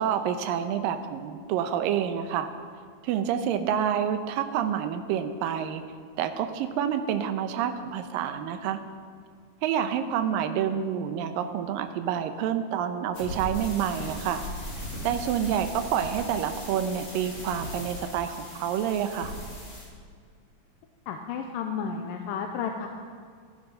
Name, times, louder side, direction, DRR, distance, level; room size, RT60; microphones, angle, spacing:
voice 1, 0.0-2.5 3.0-5.8 6.2-8.8 9.6-14.4 15.0-19.3, right 9 dB, 75° right, 8 dB, 2.5 m, -28 dB
sound 1, 13.1-19.8, equal, 30° left, 4.5 m, -38 dB
voice 2, 21.1-22.9, left 6 dB, 80° left, 4 dB, 2.3 m, -32 dB
15.5 x 13.0 x 5.6 m, 2.1 s
omnidirectional pair, 4.2 m